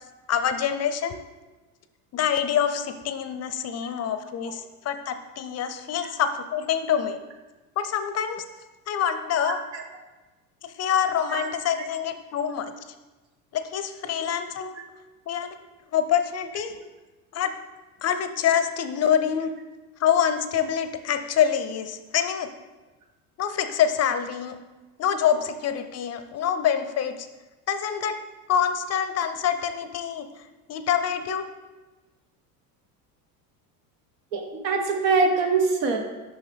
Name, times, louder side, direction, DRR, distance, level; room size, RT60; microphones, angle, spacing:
voice 1, 0.3-1.2 2.1-7.2 7.8-8.4 8.9-9.6 10.6-12.7 13.5-14.8 15.3-15.6 15.9-16.8 17.3-17.5 18.0-19.5 20.0-22.5 23.4-24.6 25.0-27.3 27.7-28.2 28.5-30.3 30.7-31.5, left 8 dB, 35° left, 10 dB, 0.5 m, -26 dB
voice 2, 34.3-36.0, right 4 dB, 80° right, 3 dB, 1.2 m, -24 dB
6.4 x 5.4 x 3.4 m, 1.2 s
hypercardioid pair, 80°, 47 cm